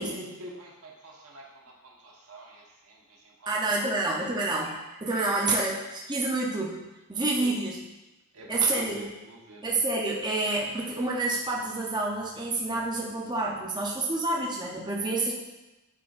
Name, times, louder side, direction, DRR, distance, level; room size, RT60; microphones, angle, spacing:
voice 1, 0.0-3.9 5.3-5.6 7.3-7.6 8.3-9.7, right 1 dB, 80° right, -2 dB, 1.2 m, -46 dB
voice 2, 3.5-7.7 8.5-9.0 9.6-15.3, right 2 dB, 20° right, -3 dB, 0.7 m, -28 dB
9.8 x 4.2 x 2.5 m, 1.0 s
head